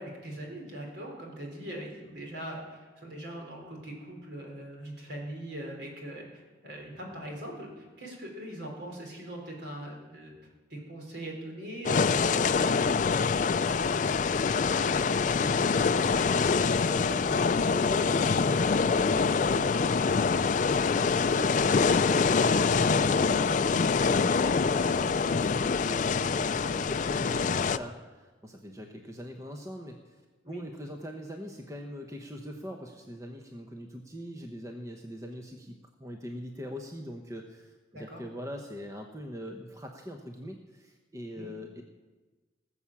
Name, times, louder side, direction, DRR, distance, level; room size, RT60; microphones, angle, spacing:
voice 1, 0.0-10.3 10.7-16.3 30.4-30.6 37.9-38.2 41.3-41.5, right 1 dB, 65° right, 0 dB, 3.8 m, -41 dB
sound 1, 11.8-27.8, left 5 dB, 40° left, 0.4 m, -25 dB
voice 2, 16.8-21.7 22.1-30.2 30.5-35.7 36.0-41.8, equal, 15° right, 2 dB, 0.9 m, -42 dB
19.0 x 7.1 x 7.2 m, 1.3 s
head